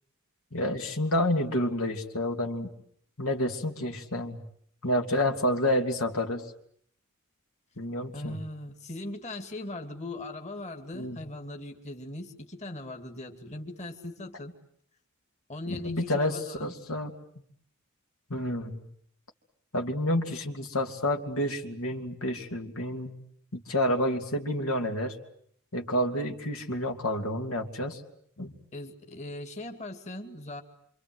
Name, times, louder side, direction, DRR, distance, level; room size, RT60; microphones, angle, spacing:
voice 1, 0.5-2.7 3.2-4.4 4.8-6.4 7.8-8.4 10.9-11.2 15.7-17.1 18.3-18.8 19.7-23.1 23.5-25.2 25.7-28.0 28.4-28.5, left 1 dB, 70° left, 3 dB, 2.8 m, -29 dB
voice 2, 8.1-14.5 15.5-16.7 28.7-30.6, left 2 dB, 30° left, 4 dB, 2.5 m, -39 dB
27.5 x 27.0 x 7.9 m, 0.67 s
head